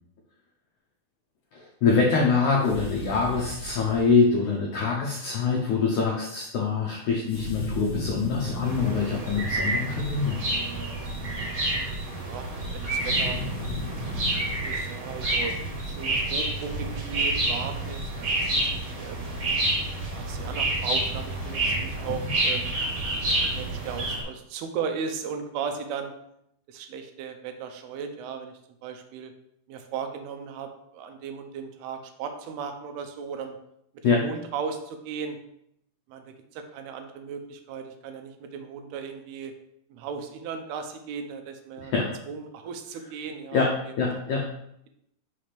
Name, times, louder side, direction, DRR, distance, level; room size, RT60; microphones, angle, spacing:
voice 1, 1.5-10.4 22.2-22.3 34.0-34.2 41.8-42.1 43.5-44.5, left 4 dB, 85° left, -1 dB, 1.7 m, -24 dB
sound 1, 2.6-4.1 7.3-9.1 12.9-14.6, left 1 dB, 45° left, 1.5 m, -35 dB
sound 2, 8.6-24.2, right 2 dB, 50° right, 2.4 m, -29 dB
voice 2, 12.2-13.4 14.4-15.6 15.9-19.3 20.0-22.7 23.4-26.1 26.7-29.3 29.7-33.6 34.0-35.4 36.1-39.5 39.9-41.9 42.3-43.6 44.1-44.2, right 6 dB, 80° right, 6 dB, 2.6 m, -36 dB
6.2 x 3.3 x 5.9 m, 0.76 s
omnidirectional pair, 4.6 m